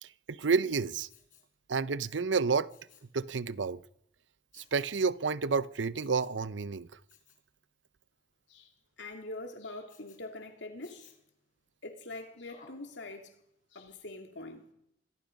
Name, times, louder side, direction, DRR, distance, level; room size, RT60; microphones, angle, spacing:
voice 1, 0.0-1.1 1.7-2.7 3.1-3.8 4.5-6.9, right 5 dB, 85° right, 0.7 m, -30 dB
Respiratory sounds, 1.1-1.5 2.7-3.1 4.5-5.0 6.0-6.4 7.1-7.4 9.9-10.2 10.8-11.3 12.5-12.9 13.4-13.5, left 5 dB, 50° left, 4.6 m, -59 dB
voice 2, 9.0-11.1 11.8-13.3 13.7-14.7, left 2 dB, 70° left, 2.9 m, -44 dB
25.5 x 22.5 x 5.4 m
head